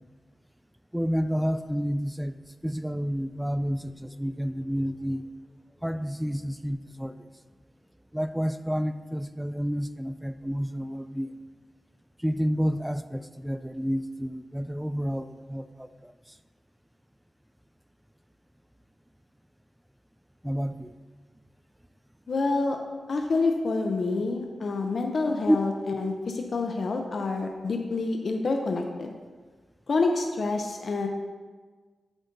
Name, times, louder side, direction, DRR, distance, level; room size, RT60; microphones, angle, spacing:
voice 1, 0.9-2.4 2.6-5.2 5.8-7.1 8.1-11.3 12.2-16.1 20.4-20.9 25.5-25.6, equal, 5° right, 11 dB, 0.3 m, -29 dB
voice 2, 22.3-22.8 23.1-29.1 29.9-31.1, left 3 dB, 65° left, 3 dB, 0.5 m, -27 dB
8.1 x 3.9 x 3.8 m, 1.4 s
cardioid pair, 70°, 0 cm